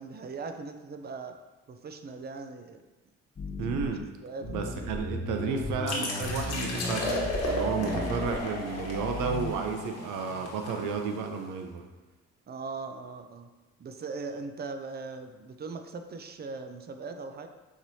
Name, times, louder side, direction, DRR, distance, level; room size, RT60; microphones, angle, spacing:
voice 1, 0.0-1.4 1.7-2.8 4.2-4.7 7.7-8.2 12.5-13.5 13.8-17.5, right 4 dB, 35° right, 7 dB, 0.5 m, -39 dB
sound 1, 3.4-4.0 4.4-9.5, left 2 dB, 30° left, 0.7 m, -36 dB
voice 2, 3.6-4.1 4.4-11.8, right 5 dB, 90° right, 4 dB, 0.6 m, -32 dB
sound 2, 5.9-11.4, left 1 dB, 55° left, 1.2 m, -34 dB
5.8 x 3.1 x 2.7 m, 1.2 s
cardioid pair, 90°, 30 cm